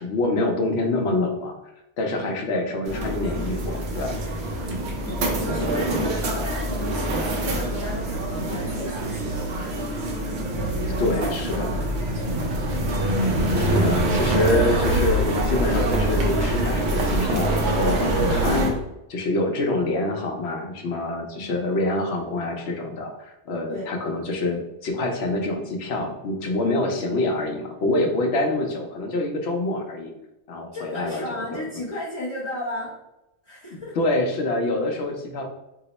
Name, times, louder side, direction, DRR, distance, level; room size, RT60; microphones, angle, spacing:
voice 1, 0.0-1.6 2.0-4.2 11.0-11.8 13.6-18.7 19.1-30.1 30.5-31.6 33.9-35.4, left 2 dB, 75° left, 3 dB, 0.9 m, -26 dB
sound 1, 2.9-18.7, right 1 dB, 85° right, 0.9 m, -24 dB
voice 2, 5.0-9.8 10.5-11.3 12.1-12.8 14.6-14.7 21.3-21.6 23.7-23.8 30.7-32.9 33.4-34.0, left 1 dB, 35° left, -6 dB, 0.5 m, -34 dB
2.8 x 2.0 x 4.0 m, 0.92 s
omnidirectional pair, 1.1 m